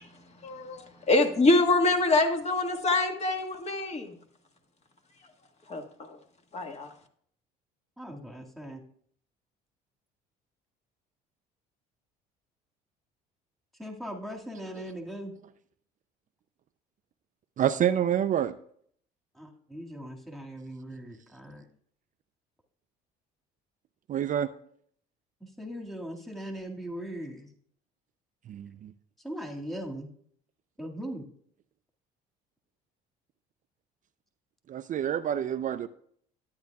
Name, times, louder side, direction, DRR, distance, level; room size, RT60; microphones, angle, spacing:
voice 1, 0.0-4.2 5.7-6.2 6.5-6.9, left 2 dB, 35° left, 1.7 m, -26 dB
voice 2, 8.0-8.8 13.8-15.3 19.3-21.6 25.4-27.5 29.2-30.1 30.8-31.2, equal, ahead, 1.9 m, -39 dB
voice 3, 17.6-18.5 24.1-24.5 28.5-28.9 34.7-35.9, right 10 dB, 45° right, 0.5 m, -27 dB
12.0 x 9.4 x 2.3 m
supercardioid pair, 80°, 19 cm